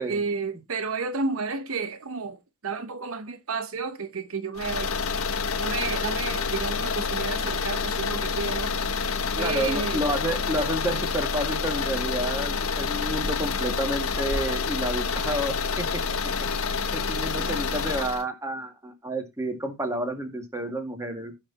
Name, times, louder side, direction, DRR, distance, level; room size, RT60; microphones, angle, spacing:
voice 1, 0.0-4.9 5.6-8.7 9.4-10.1, right 4 dB, 65° right, 0.8 m, -31 dB
sound 1, 4.6-18.2, left 5 dB, 70° left, 1.1 m, -28 dB
voice 2, 9.4-16.0 16.9-21.3, right 1 dB, 15° right, 1.9 m, -30 dB
15.0 x 5.9 x 2.9 m
head